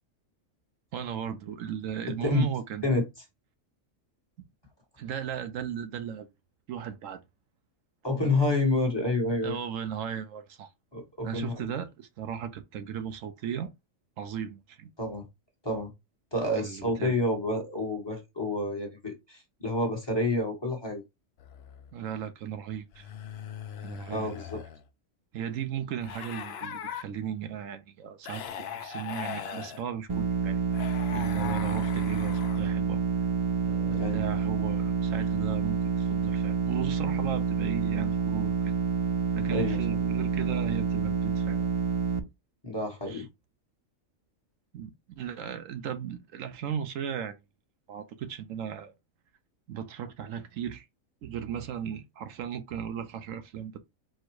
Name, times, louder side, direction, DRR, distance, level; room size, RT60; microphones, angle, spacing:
voice 1, 0.9-3.0 5.0-6.3 6.7-7.2 9.4-10.7 11.2-13.7 14.2-14.9 16.5-17.2 21.9-23.1 23.8-24.3 25.3-33.0 33.6-38.7 39.3-41.7 43.1-43.3 44.7-47.4 47.9-48.9 49.7-50.9 51.2-53.8, right 8 dB, 75° right, 1.0 m, -36 dB
voice 2, 8.0-9.6 10.9-11.7 15.0-15.3 15.6-15.9 16.3-21.0 24.1-24.6 33.9-34.2 39.5-39.8 42.6-43.3, left 2 dB, 20° left, 1.2 m, -29 dB
sound 1, 21.4-21.9 22.9-24.9 26.0-27.0 28.2-29.8 30.7-32.8, left 8 dB, 60° left, 0.7 m, -40 dB
sound 2, 30.1-42.2, right 6 dB, 30° right, 0.6 m, -28 dB
4.4 x 2.2 x 4.5 m
omnidirectional pair, 1.4 m